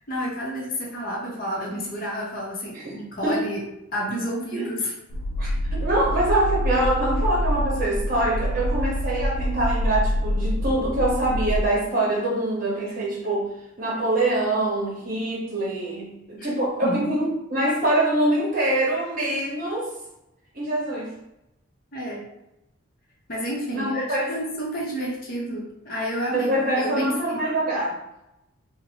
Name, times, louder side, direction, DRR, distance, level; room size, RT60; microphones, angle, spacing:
voice 1, 0.1-3.6 3.9-4.9 16.4-16.5 16.8-17.1 21.9-22.3 23.3-27.4, equal, 40° left, -3 dB, 0.7 m, -30 dB
sound 1, 5.1-11.6, equal, 80° left, 0.3 m, -26 dB
voice 2, 5.4-13.5 13.8-19.9 20.5-21.1 23.7-24.3 26.3-27.9, right 1 dB, 40° right, -5 dB, 0.9 m, -24 dB
2.7 x 2.1 x 2.8 m, 0.89 s
head